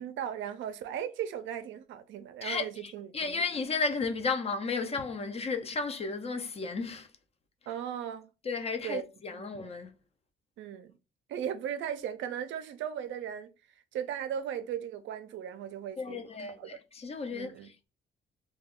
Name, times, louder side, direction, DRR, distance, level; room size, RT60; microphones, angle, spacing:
voice 1, 0.0-3.4 7.7-8.3 8.8-9.0 9.3-9.4 10.6-10.9 11.3-13.5 13.9-16.2 16.6-16.8 17.3-17.7, right 9 dB, 75° right, 0.4 m, -37 dB
voice 2, 2.4-7.1 8.4-9.9 16.0-17.9, left 4 dB, 30° left, 0.4 m, -34 dB
2.3 x 2.2 x 3.5 m
cardioid pair, 90°, 20 cm